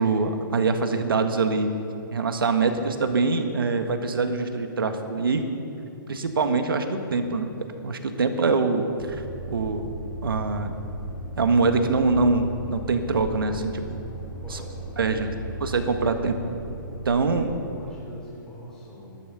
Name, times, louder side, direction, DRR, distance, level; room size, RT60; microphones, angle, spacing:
voice 1, 0.0-1.7 2.1-5.4 6.1-7.5 7.8-9.2 9.5-9.9 10.2-10.7 11.4-14.0 14.5-14.6 15.0-15.3 15.6-16.3 17.0-17.5, right 4 dB, 80° right, 6 dB, 1.7 m, -24 dB
voice 2, 8.1-8.6 14.4-15.4 16.2-16.4 17.2-19.2, left 1 dB, 5° left, -8 dB, 3.6 m, -43 dB
sound 1, 9.0-17.5, equal, 65° left, 3.3 m, -37 dB
13.5 x 12.5 x 6.9 m, 2.9 s
hypercardioid pair, 140°, 12 cm